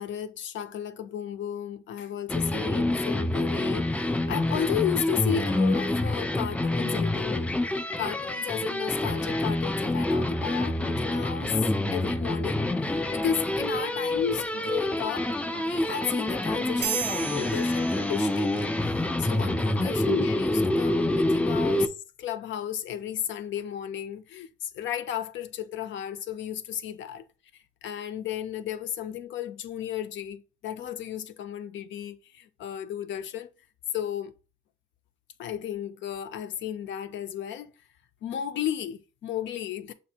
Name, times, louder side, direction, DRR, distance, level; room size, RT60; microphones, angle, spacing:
voice 1, 0.0-7.5 8.0-11.6 11.9-12.7 13.1-21.9 22.2-27.2 27.8-33.5 33.9-34.3 35.4-37.7 38.2-39.9, left 10 dB, 70° left, 0.5 m, -34 dB
sound 1, 2.3-21.9, left 1 dB, 5° left, 0.3 m, -27 dB
sound 2, 16.8-18.7, right 8 dB, 60° right, 0.5 m, -34 dB
6.0 x 2.5 x 2.8 m
cardioid pair, 90°, 20 cm